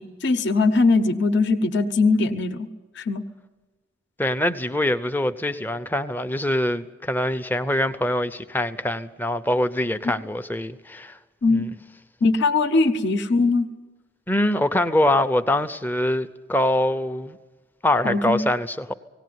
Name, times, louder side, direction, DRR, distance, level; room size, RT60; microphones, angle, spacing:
voice 1, 0.0-2.7 3.0-3.2 11.4-11.7 12.2-13.7 18.0-18.4, left 3 dB, 55° left, 0.9 m, -20 dB
voice 2, 4.2-11.2 11.5-11.7 14.3-17.4 17.8-18.9, left 1 dB, 10° left, 0.6 m, -24 dB
18.0 x 18.0 x 9.4 m
head